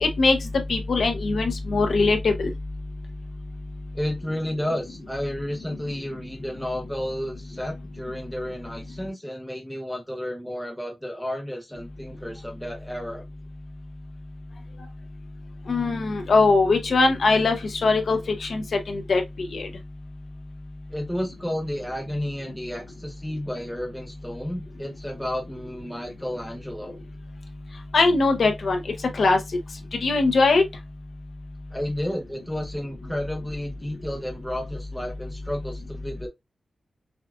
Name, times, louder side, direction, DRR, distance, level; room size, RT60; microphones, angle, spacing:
voice 1, 0.0-2.5 15.7-19.7 27.9-28.8 29.1-29.4 30.0-30.6, left 3 dB, 60° left, 0.7 m, -21 dB
voice 2, 3.9-13.2 20.9-27.0 31.7-36.3, left 1 dB, 5° left, 0.8 m, -32 dB
6.2 x 2.4 x 2.3 m
wide cardioid pair, 180°, 0 cm